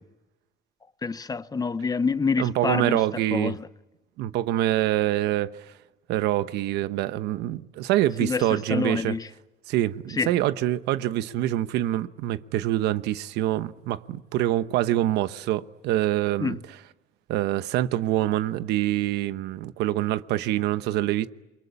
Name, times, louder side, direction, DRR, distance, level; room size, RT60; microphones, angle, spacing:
voice 1, 1.0-3.7 8.2-9.3 10.2-10.3 16.4-16.6, left 4 dB, 20° left, 0.9 m, -27 dB
voice 2, 2.4-3.6 4.2-5.6 6.1-9.1 9.7-16.6 17.3-21.3, right 14 dB, 90° right, 1.0 m, -25 dB
28.5 x 23.0 x 8.6 m
cardioid pair, 110°, 17 cm